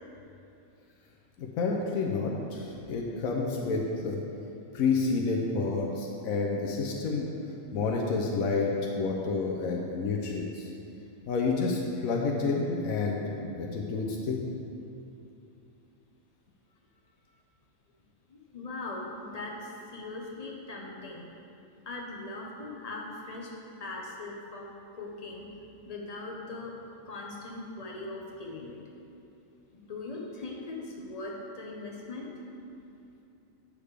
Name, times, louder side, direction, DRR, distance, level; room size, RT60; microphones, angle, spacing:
voice 1, 1.4-4.2 4.7-7.3 7.7-8.7 8.9-10.7 11.3-14.4, left 4 dB, 85° left, -1 dB, 1.1 m, -29 dB
voice 2, 18.3-21.3 21.8-24.7 24.9-25.5 25.8-26.7 27.0-28.8 29.7-32.3, left 2 dB, 35° left, -2 dB, 0.9 m, -40 dB
8.5 x 6.6 x 3.3 m, 2.7 s
omnidirectional pair, 1.4 m